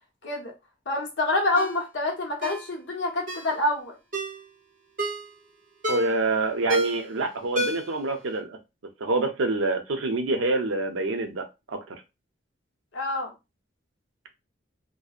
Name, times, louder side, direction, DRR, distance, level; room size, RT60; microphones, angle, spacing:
voice 1, 0.9-4.0 12.9-13.3, left 2 dB, 70° left, 0.8 m, -27 dB
Ringtone, 1.6-1.8 2.4-2.6 3.3-3.5 4.1-4.4 5.0-5.3 5.8-6.2 6.7-7.1 7.6-8.0 8.3-8.4, right 2 dB, 45° right, 1.0 m, -29 dB
voice 2, 5.9-8.6 9.0-12.0, right 2 dB, 85° right, 0.5 m, -27 dB
2.6 x 2.1 x 2.4 m
head